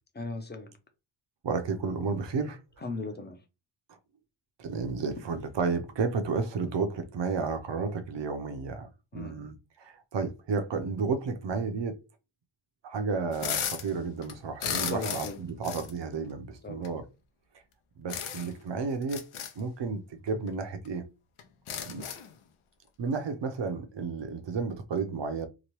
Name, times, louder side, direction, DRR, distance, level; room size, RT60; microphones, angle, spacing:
voice 1, 0.2-0.7 2.8-3.4 9.1-9.5 14.9-15.4 16.6-16.8, left 3 dB, 20° left, 0.6 m, -37 dB
voice 2, 1.4-2.6 4.6-12.0 12.8-17.0 18.0-19.2 19.6-21.1 21.8-22.1 23.0-25.5, right 4 dB, 60° right, 0.7 m, -32 dB
sound 1, 13.3-13.9 14.2-15.4 15.6-15.9 16.8-16.9 18.1-18.6 19.0-19.5 20.5-20.6 20.8-20.9 21.4-22.3, left 8 dB, 80° left, 0.6 m, -34 dB
3.0 x 2.2 x 3.0 m
wide cardioid pair, 105°, 50 cm